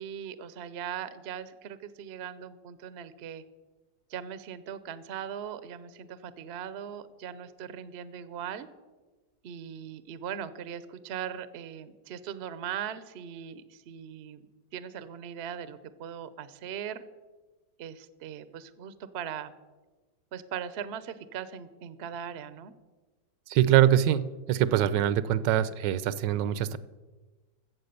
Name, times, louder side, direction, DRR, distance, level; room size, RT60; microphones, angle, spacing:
voice 1, 0.0-3.4 4.1-8.7 9.4-14.5 14.7-17.0 17.8-19.5 20.3-22.7, right 8 dB, 60° right, 14 dB, 0.6 m, -39 dB
voice 2, 23.5-26.8, right 11 dB, 80° right, 16 dB, 1.2 m, -24 dB
14.5 x 7.6 x 6.6 m, 1.3 s
omnidirectional pair, 1.9 m